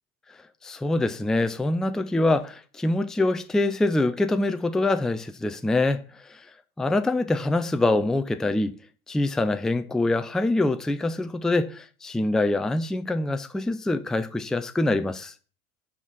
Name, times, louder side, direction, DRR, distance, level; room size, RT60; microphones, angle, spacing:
voice 1, 0.6-6.2 6.8-8.7 9.1-15.3, left 2 dB, ahead, 0.5 m, -24 dB
7.3 x 5.2 x 5.7 m
figure-of-eight pair, 75°, 43 cm